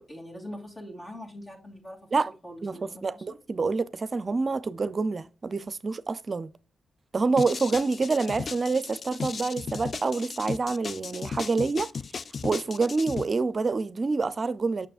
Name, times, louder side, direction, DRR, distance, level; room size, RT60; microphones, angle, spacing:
voice 1, 0.0-2.1 2.4-3.4, equal, 40° left, 2.7 m, -43 dB
voice 2, 2.6-6.5 7.1-11.9 12.4-14.9, right 4 dB, 45° right, 0.5 m, -27 dB
sound 1, 7.4-13.2, left 5 dB, 60° left, 0.3 m, -35 dB
6.7 x 6.1 x 2.4 m
supercardioid pair, 45°, 0 cm